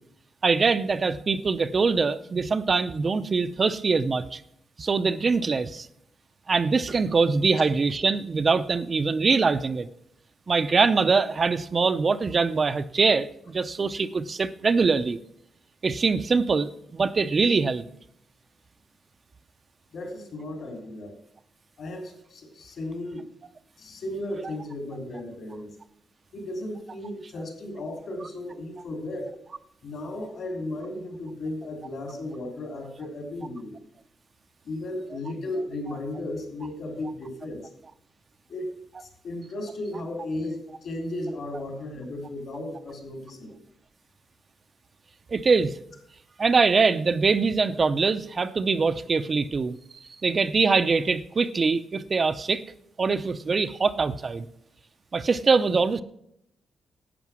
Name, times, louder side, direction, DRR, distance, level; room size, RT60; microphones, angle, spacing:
voice 1, 0.4-4.4 4.8-5.9 6.5-9.9 10.5-15.2 15.8-17.8 45.3-45.7 46.4-49.8 50.2-52.6 53.0-54.4 55.1-56.0, right 4 dB, 35° right, 11 dB, 0.5 m, -23 dB
voice 2, 19.9-21.1 21.8-23.3 23.8-25.7 26.3-29.3 29.8-33.8 34.6-37.6 38.5-38.7 39.0-43.6, left 1 dB, 60° left, 3 dB, 3.5 m, -35 dB
11.0 x 8.5 x 6.1 m, 0.74 s
wide cardioid pair, 135°, 0 cm